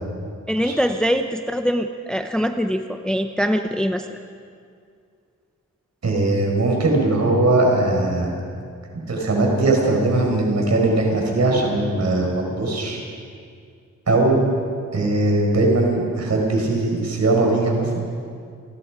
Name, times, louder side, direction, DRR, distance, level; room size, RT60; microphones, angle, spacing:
voice 1, 0.5-4.2, equal, 5° left, 6 dB, 0.6 m, -23 dB
voice 2, 6.0-8.3 8.9-13.0 14.1-14.5 14.9-18.0, right 2 dB, 55° right, 0 dB, 5.0 m, -20 dB
29.5 x 19.5 x 5.0 m, 2.3 s
wide cardioid pair, 175°, 31 cm